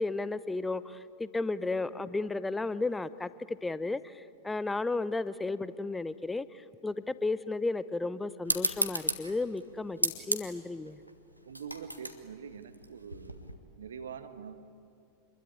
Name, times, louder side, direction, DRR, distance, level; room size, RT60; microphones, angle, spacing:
voice 1, 0.0-11.0, left 3 dB, 10° left, 0.8 m, -33 dB
sound 1, 8.4-13.5, equal, 90° right, 1.7 m, -34 dB
voice 2, 11.4-13.4 13.8-14.5, right 7 dB, 65° right, 1.7 m, -44 dB
27.5 x 21.5 x 9.9 m
figure-of-eight pair, 90°, 0 cm